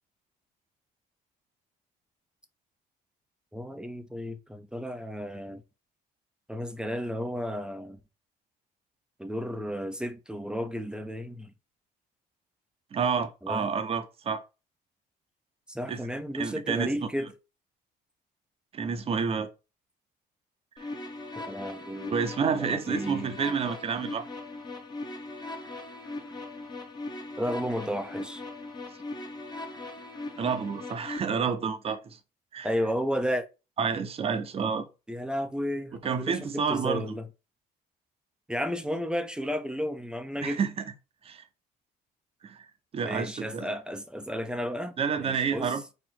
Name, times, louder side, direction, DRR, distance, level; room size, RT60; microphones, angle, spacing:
voice 1, 3.5-5.6 6.5-8.0 9.2-11.5 13.4-13.7 15.7-17.3 21.4-23.4 27.4-28.4 32.6-33.5 35.1-37.3 38.5-40.6 43.0-45.7, equal, 5° right, 0.6 m, -33 dB
voice 2, 12.9-14.5 15.9-16.0 16.3-17.1 18.7-19.5 20.8-20.9 22.1-24.3 30.4-32.2 32.5-32.7 33.8-34.9 36.0-37.0 40.4-40.8 41.2-41.4 42.4-42.7 42.9-43.7 45.0-45.9, right 6 dB, 35° right, 0.8 m, -29 dB
sound 1, 20.8-31.2, left 2 dB, 25° left, 1.0 m, -39 dB
4.3 x 2.5 x 4.5 m
cardioid pair, 110°, 17 cm